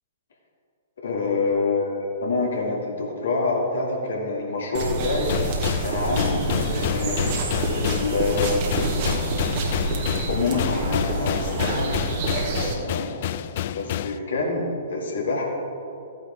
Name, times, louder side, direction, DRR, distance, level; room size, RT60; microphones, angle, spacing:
voice 1, 1.0-5.3 5.8-7.4 7.7-8.6 10.3-11.9 12.8-13.1 13.7-15.4, left 3 dB, 65° left, -1 dB, 2.4 m, -26 dB
sound 1, 4.7-12.7, right 2 dB, 45° right, 1.7 m, -27 dB
sound 2, 5.3-14.2, left 11 dB, 50° left, 0.3 m, -29 dB
14.5 x 9.2 x 3.6 m, 2.6 s
figure-of-eight pair, 115°, 0 cm